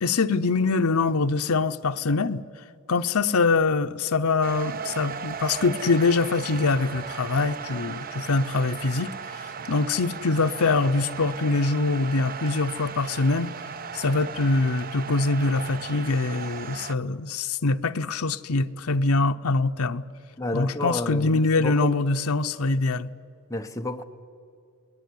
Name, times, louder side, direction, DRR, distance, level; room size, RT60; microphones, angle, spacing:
voice 1, 0.0-2.4 2.9-9.1 9.7-13.5 13.9-20.1 20.5-23.1, left 3 dB, 75° left, 9 dB, 0.8 m, -24 dB
sound 1, 4.4-17.0, right 6 dB, 40° right, 0.6 m, -37 dB
voice 2, 20.4-21.9 23.5-24.0, left 2 dB, 15° left, 5 dB, 1.1 m, -30 dB
29.5 x 19.5 x 9.8 m, 2.5 s
head